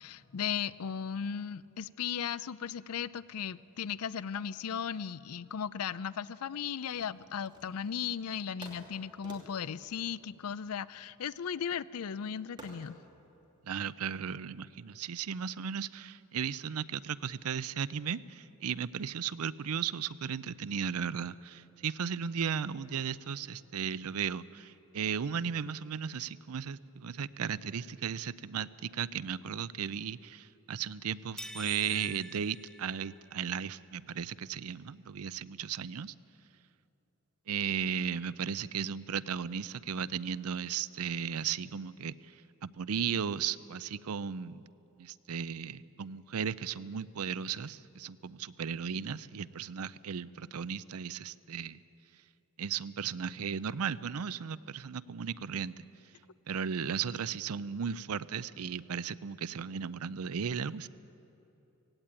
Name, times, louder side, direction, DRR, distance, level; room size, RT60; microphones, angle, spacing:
voice 1, 0.0-13.0, left 7 dB, 80° left, 18 dB, 0.5 m, -36 dB
sound 1, 6.9-8.1 8.6-11.1 12.6-13.0, right 2 dB, 20° right, 2.7 m, -52 dB
voice 2, 13.6-36.1 37.5-42.1 42.6-44.6 45.0-51.8 52.6-55.8 56.5-60.9, right 7 dB, 80° right, 17 dB, 0.5 m, -35 dB
sound 2, 31.4-33.5, equal, ahead, 0.7 m, -46 dB
17.5 x 17.0 x 9.0 m, 2.9 s
head